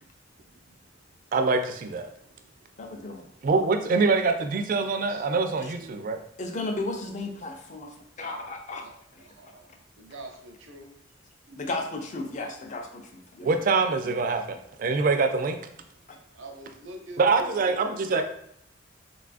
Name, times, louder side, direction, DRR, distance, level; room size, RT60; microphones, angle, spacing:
voice 1, 1.3-2.1 3.4-6.2 11.5-11.6 13.4-15.6 17.2-18.2, right 4 dB, 45° right, 7 dB, 0.3 m, -24 dB
voice 2, 2.8-3.3 5.6-5.7 6.4-8.9 9.1-9.2 11.6-13.6 16.1-16.2, left 2 dB, 40° left, 3 dB, 0.4 m, -34 dB
voice 3, 9.2-9.7 10.0-10.9 16.3-18.2, right 1 dB, 90° right, 3 dB, 0.6 m, -45 dB
3.8 x 2.3 x 2.4 m, 0.73 s
head